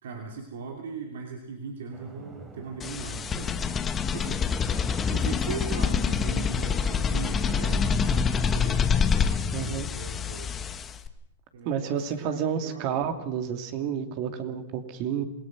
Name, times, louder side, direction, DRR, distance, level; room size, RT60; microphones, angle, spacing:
voice 1, 0.0-3.5 4.1-4.4 5.1-8.8 9.5-10.5 11.5-13.0, right 5 dB, 75° right, 3 dB, 2.7 m, -39 dB
sound 1, 1.9-9.6, right 3 dB, 25° right, 3.5 m, -44 dB
sound 2, 2.8-11.1, left 6 dB, 20° left, 1.4 m, -26 dB
voice 2, 9.5-9.9 11.6-15.2, right 8 dB, 50° right, 7 dB, 2.6 m, -30 dB
27.0 x 17.5 x 6.1 m, 0.84 s
hypercardioid pair, 120°, 0 cm